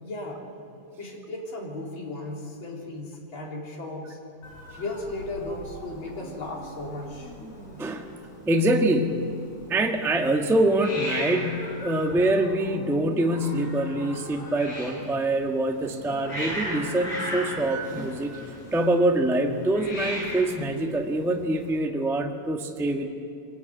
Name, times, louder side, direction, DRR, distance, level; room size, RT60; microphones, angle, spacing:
voice 1, 0.0-0.5 1.0-4.2 4.8-7.4, left 2 dB, 40° left, -2 dB, 4.3 m, -35 dB
Hiss, 4.4-21.8, equal, 65° left, 8.2 m, -38 dB
voice 2, 7.8-8.1 8.5-9.3 9.7-23.1, right 1 dB, ahead, 2 dB, 0.5 m, -25 dB
24.0 x 21.5 x 9.3 m, 2.4 s
omnidirectional pair, 3.3 m